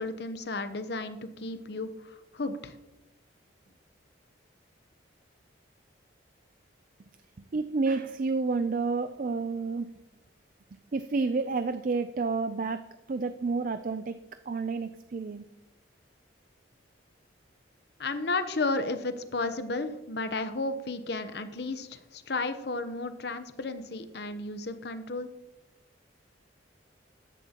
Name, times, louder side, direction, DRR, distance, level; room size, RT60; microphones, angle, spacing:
voice 1, 0.0-2.8 18.0-25.3, left 3 dB, 60° left, 10 dB, 0.9 m, -33 dB
voice 2, 7.4-9.9 10.9-14.2 14.5-15.4, right 4 dB, 45° right, 10 dB, 0.4 m, -30 dB
14.5 x 10.5 x 2.9 m, 0.96 s
head